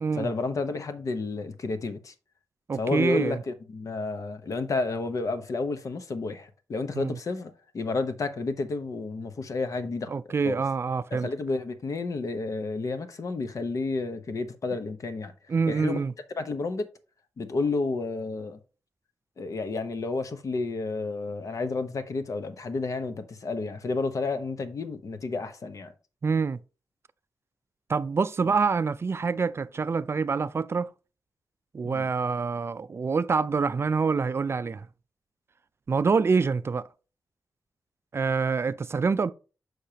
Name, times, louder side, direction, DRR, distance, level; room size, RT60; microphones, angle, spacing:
voice 1, 0.1-2.1 2.7-10.1 10.4-10.6 11.1-15.3 15.7-16.0 16.4-16.9 17.4-18.6 19.4-25.9 28.4-28.5 31.8-32.1, left 3 dB, 60° left, 0.9 m, -31 dB
voice 2, 2.7-3.4 6.9-7.2 10.1-11.3 15.5-16.1 26.2-26.6 27.9-30.9 31.7-34.9 35.9-36.9 38.1-39.3, right 5 dB, 40° right, 0.4 m, -26 dB
6.6 x 6.4 x 2.9 m
wide cardioid pair, 105°, 6 cm